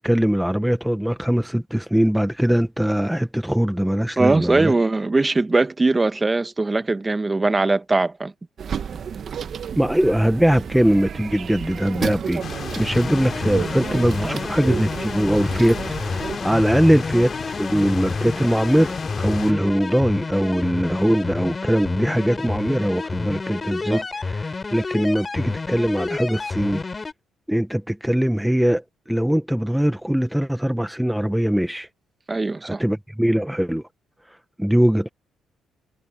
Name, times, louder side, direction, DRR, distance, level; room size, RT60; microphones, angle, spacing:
voice 1, 0.0-4.7 9.8-12.4 12.8-26.8 27.5-28.8 29.1-31.9 32.6-33.8 34.6-35.1, equal, 5° right, 1.0 m, -21 dB
voice 2, 4.2-8.3 14.2-14.4 23.8-24.0 32.3-32.8, right 3 dB, 20° right, 1.4 m, -21 dB
sound 1, 8.6-16.4, right 7 dB, 55° right, 1.4 m, -32 dB
sound 2, 12.4-19.5, left 7 dB, 50° left, 3.1 m, -34 dB
sound 3, 12.9-27.1, left 4 dB, 30° left, 3.7 m, -29 dB
cardioid pair, 90°, 0 cm